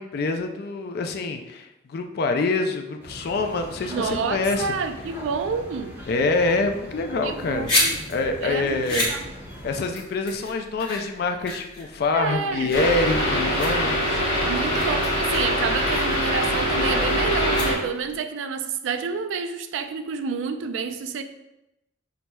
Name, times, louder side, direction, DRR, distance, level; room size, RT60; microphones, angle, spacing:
voice 1, 0.0-4.7 6.1-7.7 8.1-9.2 9.6-14.2, left 3 dB, 55° left, 4 dB, 0.3 m, -26 dB
sound 1, 3.0-9.8, equal, 10° right, 0.7 m, -40 dB
voice 2, 3.8-6.0 7.2-8.0 8.4-9.3 12.1-12.8 14.5-21.2, right 5 dB, 75° right, 8 dB, 0.3 m, -29 dB
sound 2, 7.3-18.2, left 1 dB, 25° left, 1.1 m, -31 dB
sound 3, 12.7-17.7, equal, 80° left, 1.1 m, -23 dB
5.7 x 2.0 x 2.2 m, 0.92 s
head